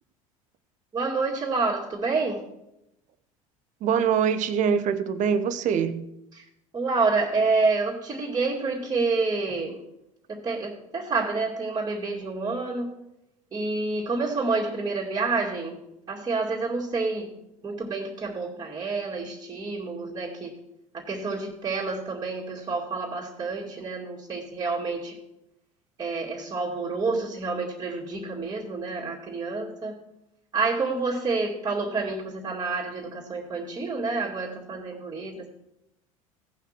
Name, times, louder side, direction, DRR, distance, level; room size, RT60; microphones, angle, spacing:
voice 1, 0.9-2.4 6.3-6.4 6.7-9.8 10.3-12.9 13.5-15.8 16.1-17.3 17.6-20.5 20.9-25.2 26.0-30.0 30.5-35.5, right 3 dB, 20° right, -5 dB, 2.3 m, -28 dB
voice 2, 3.8-6.1, right 7 dB, 45° right, 13 dB, 0.8 m, -24 dB
16.0 x 5.7 x 4.5 m, 0.84 s
figure-of-eight pair, 70°, 18 cm